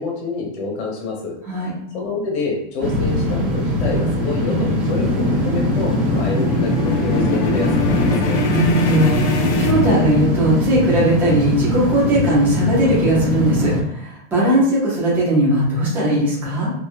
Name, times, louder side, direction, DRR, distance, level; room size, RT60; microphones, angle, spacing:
voice 1, 0.0-1.3 1.9-8.4, left 3 dB, 65° left, -1 dB, 1.2 m, -27 dB
sound 1, 2.8-13.8, left 1 dB, 35° right, 1.0 m, -21 dB
sound 2, 4.0-10.5, left 3 dB, 80° left, 0.6 m, -25 dB
voice 2, 8.5-16.7, right 1 dB, 5° right, -8 dB, 0.4 m, -18 dB
2.9 x 2.2 x 2.3 m, 0.74 s
supercardioid pair, 165°, 35 cm